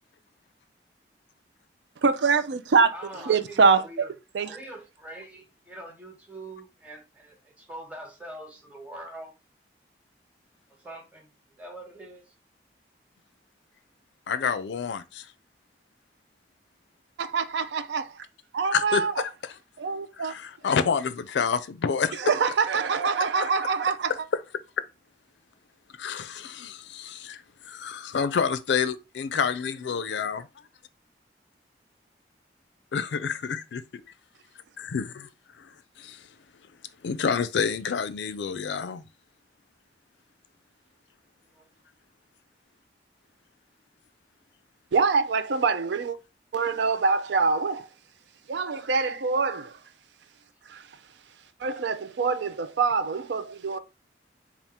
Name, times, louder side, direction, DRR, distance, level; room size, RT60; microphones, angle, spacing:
voice 1, 2.0-2.9 3.2-3.8 4.3-4.6 17.2-18.2 18.5-19.1 19.8-20.3 22.2-24.1 44.9-46.2 46.5-47.9 48.5-49.8 50.7-50.8 51.6-53.8, right 4 dB, 80° right, 0.4 m, -24 dB
voice 2, 2.9-4.1 4.4-9.3 10.8-11.3 11.6-12.3 41.5-41.7, right 1 dB, 5° right, 1.0 m, -43 dB
voice 3, 14.3-15.3 18.7-19.6 20.2-22.3 23.4-23.5 26.0-30.5 32.9-34.0 34.8-35.3 35.6-36.3 37.0-39.0, left 6 dB, 85° left, 0.4 m, -29 dB
3.6 x 2.4 x 4.1 m
head